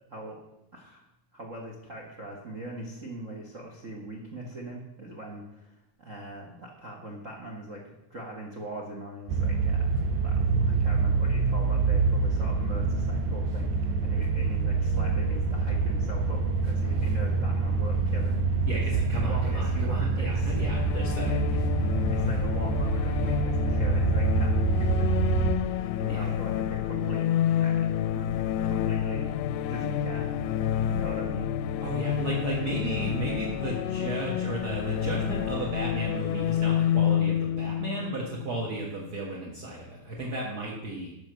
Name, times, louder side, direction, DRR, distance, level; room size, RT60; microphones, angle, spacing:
voice 1, 0.1-0.4 0.7-1.0 1.3-10.4 10.6-20.5 21.2-21.6 22.1-25.1 26.0-27.3 27.6-27.9 28.1-29.3 29.6-30.3 30.9-31.5, right 1 dB, 70° right, 1 dB, 0.7 m, -41 dB
sound 1, 9.3-25.5, right 3 dB, 90° right, 2.7 m, -26 dB
voice 2, 18.7-21.3 25.8-26.3 30.7-30.8 31.8-41.1, right 2 dB, 45° right, -4 dB, 1.3 m, -34 dB
sound 2, 20.5-39.1, left 10 dB, 80° left, 2.0 m, -29 dB
12.5 x 5.7 x 6.7 m, 0.87 s
omnidirectional pair, 4.0 m